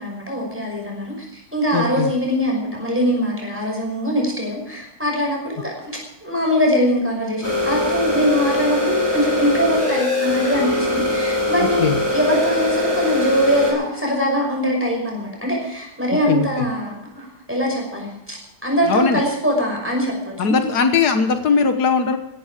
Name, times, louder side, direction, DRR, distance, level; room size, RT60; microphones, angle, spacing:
voice 1, 0.0-5.7 6.2-18.4 18.6-20.6, equal, 5° right, -1 dB, 6.1 m, -22 dB
voice 2, 1.7-2.1 11.8-12.0 16.3-16.5 18.8-19.2 20.4-22.2, left 5 dB, 80° left, 7 dB, 1.8 m, -19 dB
sound 1, 7.4-13.7, left 2 dB, 10° left, 5.5 m, -22 dB
16.5 x 13.5 x 5.1 m, 0.85 s
omnidirectional pair, 1.7 m